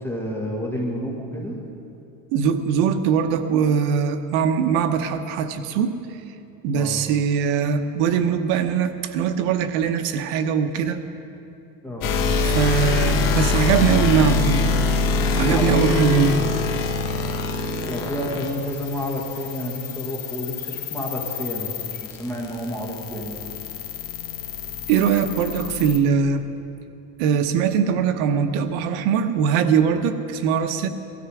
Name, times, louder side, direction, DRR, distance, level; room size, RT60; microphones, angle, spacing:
voice 1, 0.0-1.6 6.7-7.0 11.8-12.1 15.4-15.9 16.3-16.4 17.8-21.7 22.0-23.4, equal, 5° left, -2 dB, 1.7 m, -30 dB
voice 2, 2.3-5.9 6.6-11.0 12.4-14.7 15.3-16.4 24.9-26.4 27.2-30.9, right 7 dB, 70° right, 8 dB, 1.0 m, -21 dB
sound 1, 12.0-26.0, left 4 dB, 50° left, 1.6 m, -25 dB
17.5 x 13.0 x 4.9 m, 2.7 s
cardioid pair, 155°, 43 cm